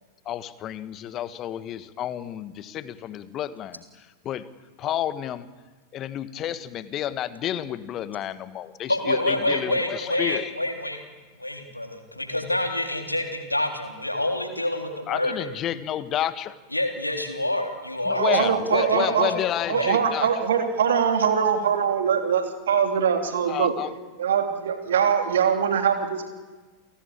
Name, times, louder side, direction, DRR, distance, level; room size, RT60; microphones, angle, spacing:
voice 1, 0.2-4.4 4.8-5.5 5.9-10.5 15.1-16.5 18.0-20.3 23.5-23.9, left 11 dB, 30° left, 15 dB, 1.4 m, -30 dB
voice 2, 8.9-11.0 11.4-15.5 16.7-19.2 19.7-20.0, left 1 dB, 85° left, 5 dB, 3.4 m, -27 dB
voice 3, 18.2-19.3 19.7-23.7 24.2-26.3, right 7 dB, 60° right, 6 dB, 3.2 m, -22 dB
29.5 x 18.0 x 8.8 m, 1.3 s
figure-of-eight pair, 90°, 0 cm